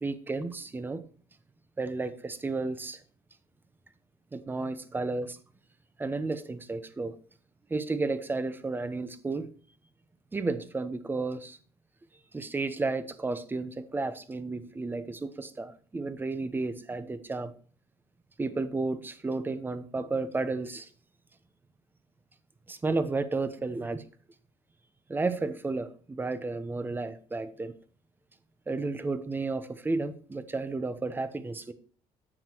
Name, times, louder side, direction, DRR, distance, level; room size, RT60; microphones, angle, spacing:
voice 1, 0.0-1.0 1.8-3.0 4.3-5.4 6.0-7.2 7.7-9.5 10.3-11.6 12.3-17.5 18.4-20.9 22.7-24.0 25.1-27.7 28.7-31.7, right 3 dB, 15° right, 0.9 m, -32 dB
9.8 x 7.2 x 4.5 m
cardioid pair, 115°, 12 cm